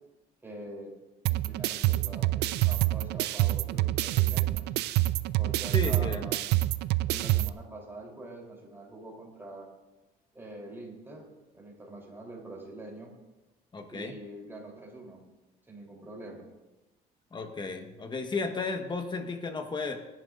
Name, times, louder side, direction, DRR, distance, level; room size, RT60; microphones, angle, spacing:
voice 1, 0.4-0.9 1.3-4.7 5.4-6.5 7.1-9.7 10.3-13.1 13.9-15.2 15.7-16.5, right 1 dB, 15° right, -2 dB, 3.8 m, -44 dB
sound 1, 1.3-7.5, right 17 dB, 80° right, 0.4 m, -27 dB
voice 2, 5.7-6.3 13.7-14.1 17.3-20.0, left 4 dB, 25° left, 5 dB, 1.5 m, -34 dB
21.0 x 10.5 x 2.7 m, 1.1 s
cardioid pair, 110°, 17 cm